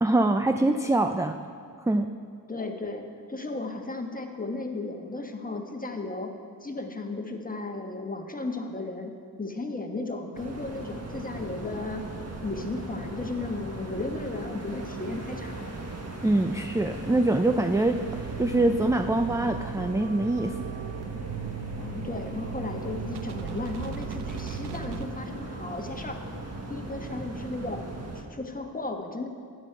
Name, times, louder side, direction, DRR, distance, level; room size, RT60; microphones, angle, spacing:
voice 1, 0.0-1.4 1.8-2.1 16.2-20.5, right 2 dB, 10° right, 7 dB, 0.4 m, -24 dB
voice 2, 2.5-6.3 6.6-12.0 12.4-15.7 21.7-26.2 26.7-27.8 28.1-29.3, left 2 dB, 20° left, 4 dB, 1.3 m, -35 dB
sound 1, 10.3-28.2, right 2 dB, 40° right, 1.5 m, -38 dB
sound 2, 17.9-25.1, right 7 dB, 80° right, 0.7 m, -38 dB
12.5 x 9.3 x 4.6 m, 2.2 s
cardioid pair, 65°, 39 cm